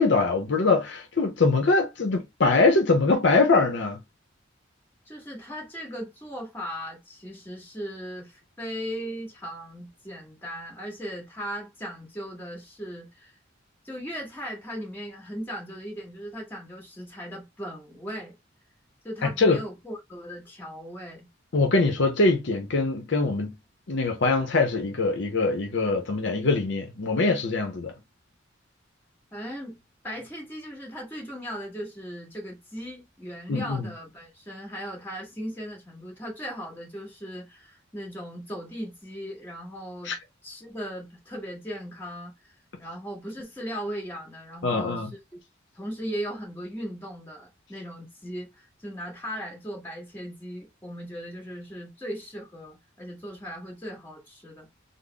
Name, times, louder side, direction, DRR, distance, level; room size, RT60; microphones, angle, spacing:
voice 1, 0.0-4.0 19.2-19.6 21.5-23.6 23.9-27.9 33.5-33.9 40.0-40.2 44.6-45.1, left 3 dB, 65° left, 0.7 m, -23 dB
voice 2, 5.1-13.3 13.8-18.3 19.0-21.3 29.3-29.8 30.0-40.1 40.4-42.3 42.8-45.2 45.7-54.7, equal, 10° left, 1.7 m, -38 dB
3.9 x 2.0 x 3.4 m
head